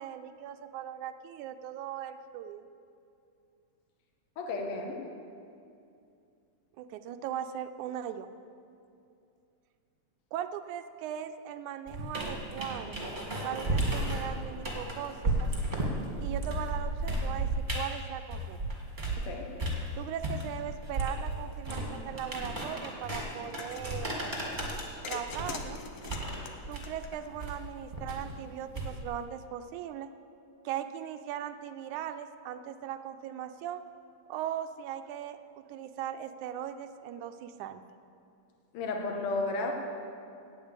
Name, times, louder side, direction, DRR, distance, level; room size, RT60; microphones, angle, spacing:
voice 1, 0.0-2.7 6.8-8.3 10.3-13.0 13.4-15.5 16.2-18.6 20.0-24.2 25.1-25.8 26.7-30.1 30.7-33.8 34.3-35.4 35.7-37.8, right 10 dB, 85° right, 9 dB, 2.0 m, -39 dB
voice 2, 4.4-5.0 19.2-19.5 38.7-39.7, left 3 dB, 60° left, 2 dB, 1.9 m, -33 dB
sound 1, 11.9-19.3 19.6-29.2, right 1 dB, 25° right, 1.2 m, -34 dB
sound 2, 23.4-23.9 25.0-27.5, left 6 dB, 75° left, 1.3 m, -43 dB
8.8 x 8.7 x 8.1 m, 2.5 s
omnidirectional pair, 3.5 m